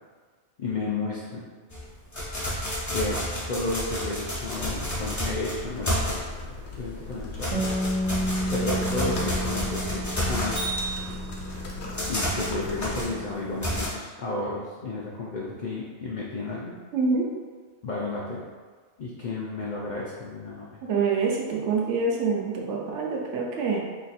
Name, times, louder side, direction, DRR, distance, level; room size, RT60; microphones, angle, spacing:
voice 1, 0.6-1.5 2.9-6.2 6.8-7.7 8.5-10.6 12.0-16.8 17.8-18.5 19.0-20.8, left 2 dB, 85° left, -4 dB, 0.4 m, -32 dB
sound 1, 1.7-6.5 6.9-13.9, equal, 20° left, 0.5 m, -30 dB
sound 2, 4.6-13.0, left 3 dB, 60° left, 0.9 m, -38 dB
Bass guitar, 7.5-13.8, right 1 dB, 80° right, 1.2 m, -32 dB
voice 2, 16.9-17.3 20.8-23.8, right 4 dB, 65° right, -1 dB, 0.9 m, -26 dB
3.0 x 2.4 x 4.1 m, 1.5 s
omnidirectional pair, 1.4 m